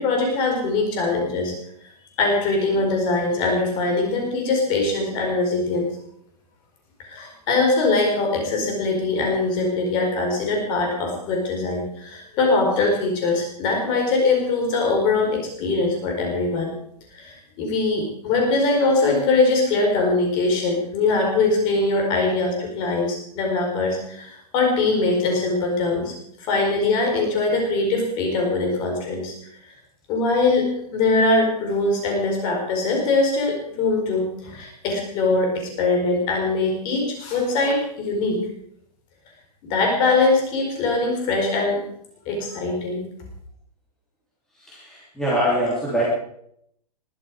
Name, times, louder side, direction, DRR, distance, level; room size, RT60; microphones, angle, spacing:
voice 1, 0.0-1.5 2.2-5.9 7.0-16.7 17.1-29.3 30.1-38.4 39.6-41.8 42.3-43.0, left 3 dB, 20° left, 1 dB, 4.7 m, -22 dB
voice 2, 44.6-46.0, equal, ahead, -7 dB, 3.0 m, -23 dB
21.0 x 13.0 x 4.9 m, 0.71 s
hypercardioid pair, 175°, 21 cm